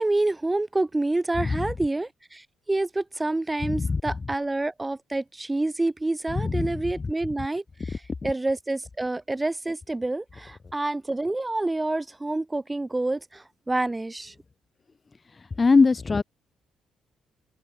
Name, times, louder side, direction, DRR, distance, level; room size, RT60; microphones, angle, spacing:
voice 1, 0.0-14.3, right 2 dB, 20° right, 7.8 m, -28 dB
voice 2, 3.6-4.0 6.3-6.8 15.3-16.2, left 4 dB, 35° left, 1.6 m, -22 dB
open air
supercardioid pair, 60°, 0 cm